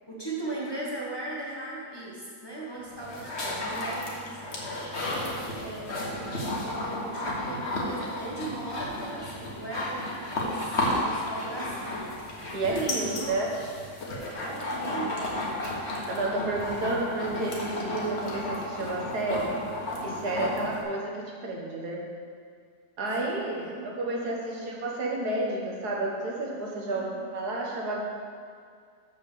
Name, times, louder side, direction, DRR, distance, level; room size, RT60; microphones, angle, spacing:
voice 1, 0.1-12.0 12.6-13.3 14.4-15.3 20.3-20.6 23.2-24.7 26.9-27.2, right 2 dB, 15° left, -6 dB, 1.3 m, -38 dB
sound 1, 2.8-20.8, left 1 dB, 45° left, 1.5 m, -33 dB
voice 2, 12.5-13.5 15.6-15.7 16.1-19.6 20.0-22.1 23.0-28.1, right 2 dB, 75° right, -2 dB, 1.8 m, -31 dB
6.7 x 5.9 x 6.8 m, 2.1 s
omnidirectional pair, 1.7 m